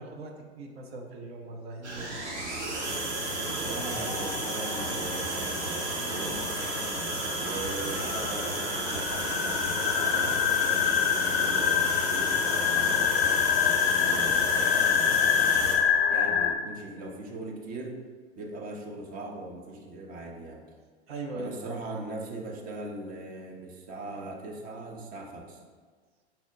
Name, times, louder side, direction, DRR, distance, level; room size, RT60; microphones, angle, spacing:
voice 1, 0.0-2.1 21.1-21.8, right 2 dB, 60° right, 1 dB, 0.7 m, -40 dB
sound 1, 1.8-15.8, right 2 dB, 85° right, 1.1 m, -32 dB
voice 2, 3.5-6.4 7.3-15.1 16.1-18.0 18.4-20.7 21.3-25.6, right 2 dB, 25° right, 1 dB, 0.5 m, -40 dB
sound 2, 3.7-16.5, left 9 dB, 60° left, 0.4 m, -27 dB
5.5 x 2.1 x 3.7 m, 1.5 s
figure-of-eight pair, 95°, 34 cm